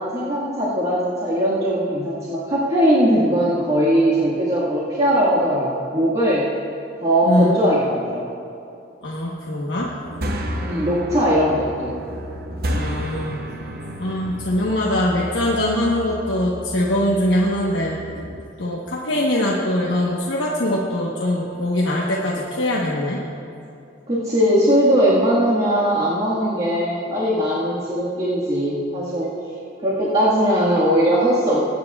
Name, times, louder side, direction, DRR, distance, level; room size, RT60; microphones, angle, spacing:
voice 1, 0.0-6.5 7.0-8.3 10.5-11.9 24.1-29.3 29.8-31.6, equal, 35° right, -9 dB, 1.7 m, -19 dB
voice 2, 9.0-9.9 12.7-13.4 14.0-18.0 18.6-23.2, left 1 dB, 80° left, -4 dB, 1.1 m, -22 dB
sound 1, 9.8-18.4, equal, 55° right, 0.7 m, -31 dB
22.5 x 9.4 x 2.4 m, 2.6 s
head